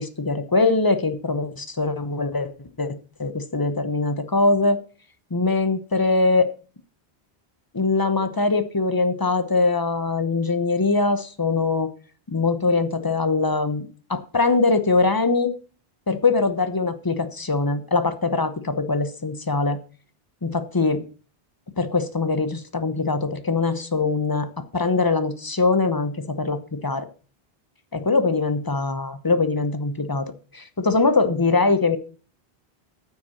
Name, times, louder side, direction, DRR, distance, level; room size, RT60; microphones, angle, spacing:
voice 1, 0.0-2.5 2.8-4.8 5.3-6.5 7.7-11.9 12.3-15.5 16.1-19.8 20.4-21.0 21.8-27.1 27.9-32.0, left 3 dB, 20° left, 11 dB, 0.9 m, -22 dB
9.6 x 6.0 x 7.0 m, 0.39 s
omnidirectional pair, 1.0 m